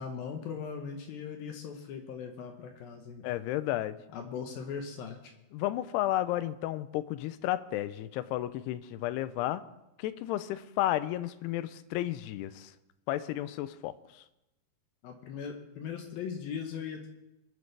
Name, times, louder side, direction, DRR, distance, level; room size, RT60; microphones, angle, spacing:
voice 1, 0.0-3.2 4.1-5.3 15.0-17.1, left 6 dB, 70° left, 4 dB, 2.6 m, -39 dB
voice 2, 3.2-4.0 5.5-9.6 10.0-12.7 13.1-13.9, left 14 dB, 90° left, 14 dB, 2.7 m, -32 dB
22.0 x 9.3 x 3.3 m, 0.92 s
omnidirectional pair, 4.7 m